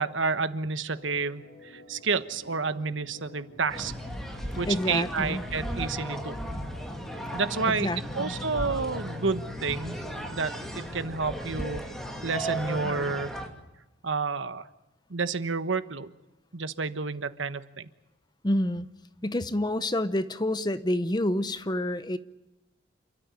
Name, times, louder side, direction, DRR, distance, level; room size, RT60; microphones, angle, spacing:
voice 1, 0.0-3.9 4.6-6.4 7.3-7.9 8.1-10.0 10.3-11.9 12.2-13.3 14.0-14.7 15.1-16.1 16.5-17.9, right 4 dB, 80° right, 1.3 m, -30 dB
Organ, 0.8-13.0, left 1 dB, 60° left, 7.4 m, -50 dB
sound 1, 3.7-13.5, equal, ahead, 2.7 m, -35 dB
voice 2, 4.7-5.4 7.7-8.4 18.4-18.9 19.2-22.2, left 1 dB, 20° left, 0.8 m, -28 dB
28.5 x 13.5 x 9.8 m
head